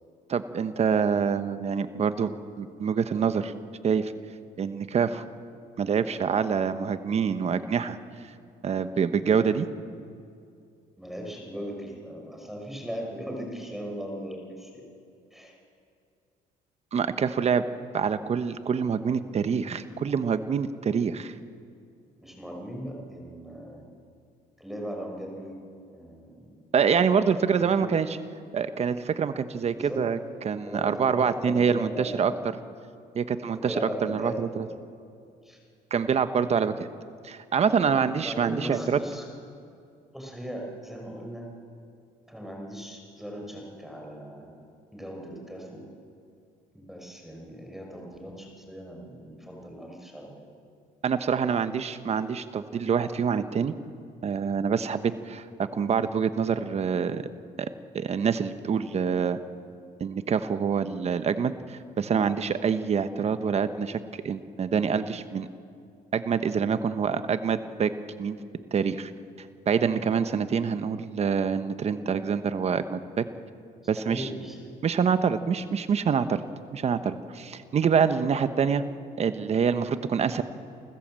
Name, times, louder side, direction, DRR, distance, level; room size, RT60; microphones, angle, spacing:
voice 1, 0.3-2.3 2.6-3.5 3.8-4.1 4.6-5.2 5.8-8.0 8.6-9.7 16.9-17.6 17.9-21.3 26.7-28.2 28.5-30.2 30.4-32.3 33.1-33.7 34.0-34.6 35.9-36.9 37.2-39.0 51.0-53.7 54.2-57.2 57.6-57.7 57.9-59.4 60.0-64.0 64.2-65.5 66.1-67.9 68.2-68.4 68.7-69.1 69.7-73.2 73.9-74.3 74.8-76.4 76.7-78.8 79.2-80.4, right 6 dB, 40° right, 11 dB, 1.1 m, -26 dB
voice 2, 11.0-14.8 15.3-15.5 22.2-23.8 24.6-25.6 25.9-26.5 27.0-27.9 29.7-30.1 30.6-32.5 33.6-34.8 35.4-35.6 38.3-39.2 40.1-41.5 42.3-44.5 44.9-45.8 46.7-50.5 74.0-74.6, equal, ahead, 0 dB, 5.3 m, -38 dB
29.0 x 14.5 x 7.6 m, 2.4 s
cardioid pair, 110°, 17 cm